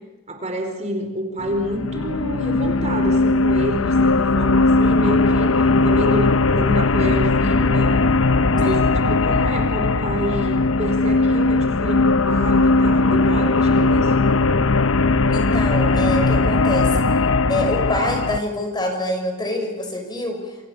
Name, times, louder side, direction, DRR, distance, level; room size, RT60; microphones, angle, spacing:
voice 1, 0.3-5.5 5.8-7.9 8.5-14.1, equal, 35° right, 4 dB, 4.5 m, -28 dB
sound 1, 1.4-18.4, left 3 dB, 90° left, 0.9 m, -18 dB
voice 2, 15.3-16.9 17.5-20.4, left 1 dB, 20° left, 4 dB, 6.1 m, -25 dB
28.5 x 27.5 x 6.8 m, 1.1 s
head